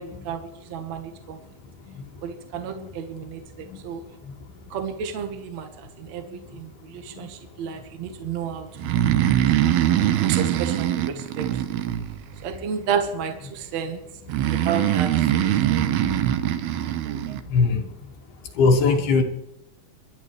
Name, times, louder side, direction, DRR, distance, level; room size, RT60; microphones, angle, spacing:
voice 1, 0.0-1.4 2.2-4.0 4.7-5.7 6.0-8.7 8.9-9.1 10.2-11.5 12.4-14.0 14.5-15.9, right 7 dB, 60° right, 5 dB, 2.2 m, -32 dB
Breathing, 8.8-12.5 14.3-17.4, right 11 dB, 90° right, 3.0 m, -22 dB
voice 2, 17.5-17.9 18.6-19.2, left 4 dB, 80° left, 1 dB, 3.9 m, -20 dB
26.0 x 12.0 x 3.3 m, 0.86 s
omnidirectional pair, 4.3 m